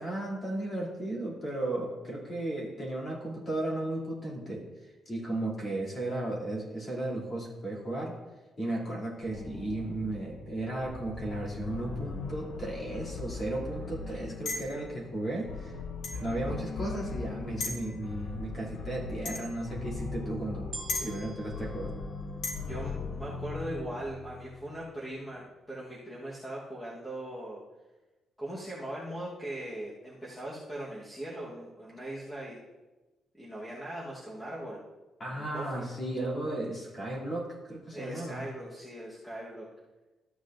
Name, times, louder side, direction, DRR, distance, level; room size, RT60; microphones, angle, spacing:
voice 1, 0.0-4.7 5.1-8.2 8.6-15.8 16.2-20.7 21.0-21.9 35.2-38.4, right 1 dB, 30° left, -4 dB, 2.6 m, -35 dB
sound 1, 9.2-24.9, left 4 dB, 45° left, 0.6 m, -40 dB
sound 2, 14.5-14.8 16.0-16.2 17.6-17.9 19.2-19.5 20.9-21.1 22.4-22.6, left 3 dB, 85° left, 1.7 m, -34 dB
sound 3, 20.7-23.1 23.8-23.9, right 3 dB, 25° right, 0.6 m, -47 dB
voice 2, 22.6-27.6 28.4-32.6 33.3-34.8 35.3-35.9 37.9-39.7, right 1 dB, 5° left, -6 dB, 1.2 m, -40 dB
13.5 x 8.1 x 2.5 m, 1.1 s
cardioid pair, 175°, 0 cm